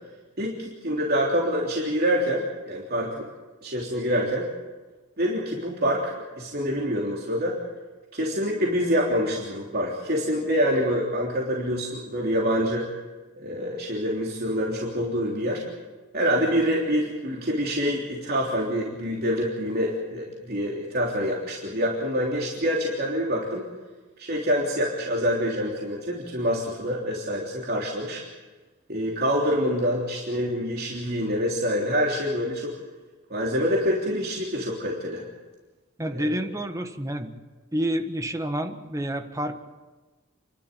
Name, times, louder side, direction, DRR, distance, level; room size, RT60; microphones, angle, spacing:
voice 1, 0.4-3.2 3.6-4.5 5.2-7.6 8.1-12.9 13.4-15.6 16.1-23.7 24.2-28.2 28.9-32.7 33.3-35.2 36.1-36.3, equal, 50° right, -3 dB, 3.4 m, -26 dB
voice 2, 36.0-37.4 37.7-39.5, right 1 dB, 15° right, 6 dB, 1.5 m, -29 dB
29.0 x 12.5 x 9.3 m, 1.2 s
head